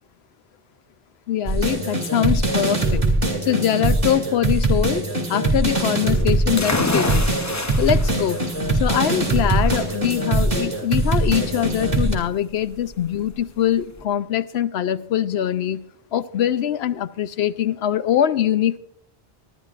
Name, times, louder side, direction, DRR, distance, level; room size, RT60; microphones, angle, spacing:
voice 1, 1.3-3.0 3.4-7.2 7.8-8.4 8.7-15.8 16.1-18.8, left 10 dB, 90° left, 0.9 m, -23 dB
sound 1, 1.5-12.2, right 2 dB, 35° right, 2.5 m, -22 dB
sound 2, 6.6-14.0, left 2 dB, 20° left, 0.6 m, -30 dB
22.0 x 10.5 x 2.5 m
omnidirectional pair, 1.0 m